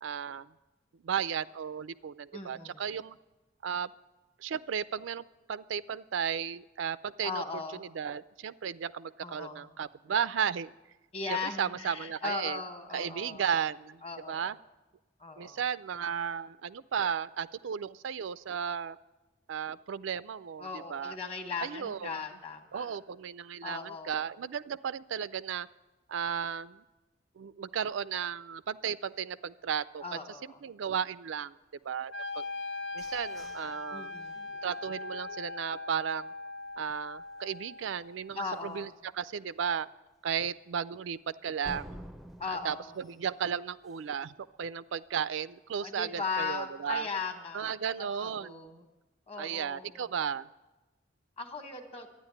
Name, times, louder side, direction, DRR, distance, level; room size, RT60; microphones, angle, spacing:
voice 1, 0.0-0.5 1.0-3.2 3.6-3.9 4.4-7.4 7.8-10.7 11.3-12.6 12.9-14.0 14.3-14.6 15.4-19.0 19.5-21.2 21.6-22.2 22.7-25.7 26.1-26.8 27.4-30.2 30.6-31.5 31.8-32.4 32.9-34.1 34.6-36.3 36.8-39.9 40.2-42.0 42.5-47.1 47.5-48.7 49.4-50.5, right 7 dB, 90° right, 16 dB, 0.4 m, -34 dB
voice 2, 2.3-2.8 7.2-7.8 9.2-9.7 11.1-13.4 14.0-14.5 15.2-15.6 20.6-22.9 23.6-24.2 30.0-30.6 33.9-34.6 38.3-38.9 42.4-43.0 45.8-48.9 49.3-50.0 51.4-52.1, left 4 dB, 30° left, 6 dB, 1.4 m, -38 dB
Wind instrument woodwind instrument, 32.1-38.2, left 3 dB, 80° left, 0.8 m, -40 dB
sound 1, 32.4-36.2 36.7-36.8 37.2-37.6 38.0-38.1 38.5-38.6 41.6-44.3, equal, ahead, 0.4 m, -51 dB
12.5 x 9.8 x 9.9 m, 1.1 s
head